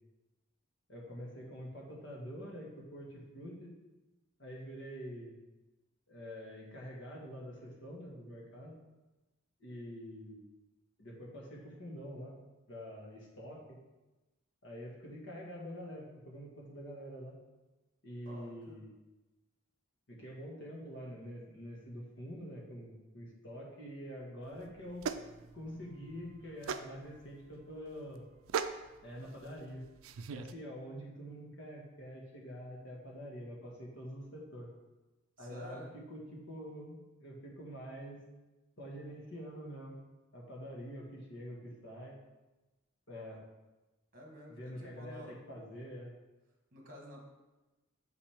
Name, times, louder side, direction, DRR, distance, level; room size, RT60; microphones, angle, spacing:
voice 1, 0.9-3.7 4.4-5.3 6.1-8.7 9.6-10.4 11.0-12.3 12.7-13.8 14.6-17.3 18.0-18.9 20.1-25.1 25.5-28.2 29.0-29.9 30.3-34.7 35.4-38.2 38.8-40.0 40.3-42.1 43.1-43.4 44.5-46.1, equal, 60° left, -2 dB, 1.5 m, -46 dB
voice 2, 18.2-18.8 35.4-35.9 44.1-45.4 46.7-47.2, equal, 45° right, 0 dB, 1.3 m, -51 dB
sound 1, 24.4-30.5, right 6 dB, 85° right, 0.4 m, -41 dB
6.4 x 5.7 x 3.5 m, 1.1 s
head